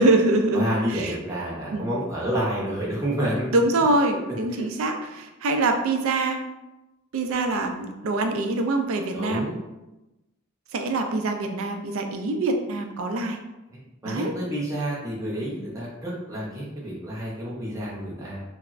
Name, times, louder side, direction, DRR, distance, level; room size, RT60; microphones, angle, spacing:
voice 1, 0.0-1.2 1.7-1.9 3.5-6.4 7.1-9.5 10.7-13.4 14.0-14.3, right 2 dB, 75° right, 5 dB, 0.4 m, -24 dB
voice 2, 0.5-3.5 4.5-4.6 9.1-9.6 13.7-18.4, right 1 dB, 15° right, -6 dB, 0.7 m, -29 dB
3.2 x 2.0 x 2.4 m, 0.99 s
head